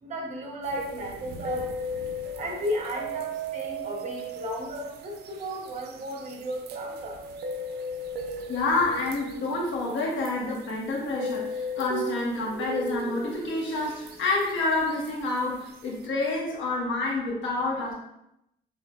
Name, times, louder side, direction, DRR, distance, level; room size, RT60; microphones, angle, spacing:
voice 1, 0.0-1.7 2.4-7.2 17.6-17.8, equal, 35° right, 0 dB, 0.8 m, -34 dB
sound 1, 0.6-16.1, right 1 dB, 55° right, 0.4 m, -37 dB
voice 2, 8.5-17.9, left 2 dB, 75° left, -2 dB, 1.1 m, -28 dB
5.8 x 2.5 x 2.3 m, 0.82 s
cardioid pair, 145°, 20 cm